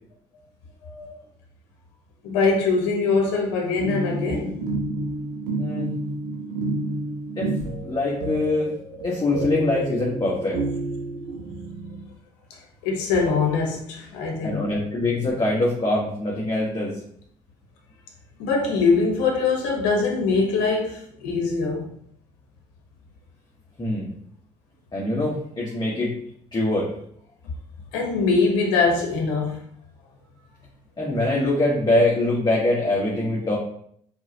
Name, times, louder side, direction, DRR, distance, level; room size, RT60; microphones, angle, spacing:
voice 1, 0.8-1.2 2.2-4.6 12.5-14.6 18.4-21.9 27.9-29.6, left 4 dB, 75° left, 1 dB, 1.1 m, -23 dB
sound 1, 3.8-12.0, right 2 dB, 75° right, 1.1 m, -30 dB
voice 2, 5.6-5.9 7.4-7.5 7.8-8.7 9.0-10.7 14.4-17.0 23.8-24.1 24.9-26.2 26.5-26.9 31.0-33.5, left 2 dB, 25° left, -5 dB, 1.5 m, -23 dB
4.6 x 3.9 x 2.8 m, 0.66 s
hypercardioid pair, 55°, 19 cm